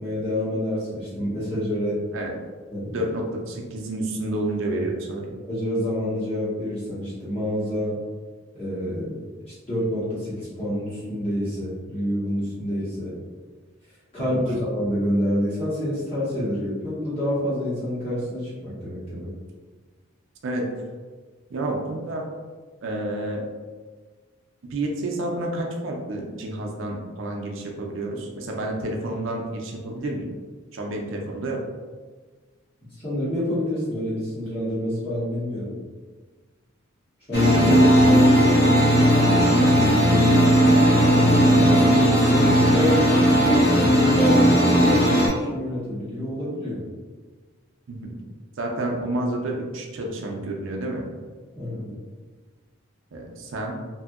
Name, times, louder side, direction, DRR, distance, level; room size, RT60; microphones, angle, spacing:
voice 1, 0.0-2.0 2.7-3.0 5.5-8.0 8.5-9.2 9.7-13.1 14.1-19.3 33.0-35.7 37.3-38.5 41.0-46.8 51.5-51.9, equal, 30° left, -10 dB, 1.3 m, -27 dB
voice 2, 2.9-5.2 14.2-14.4 20.4-20.7 21.5-22.2 22.8-23.4 24.7-30.3 30.7-31.6 39.6-39.9 47.9-48.1 48.6-51.0 53.1-53.8, right 1 dB, 70° right, 0 dB, 0.5 m, -29 dB
sound 1, 37.3-45.3, equal, 50° left, 0.6 m, -17 dB
2.7 x 2.6 x 2.4 m, 1.4 s
head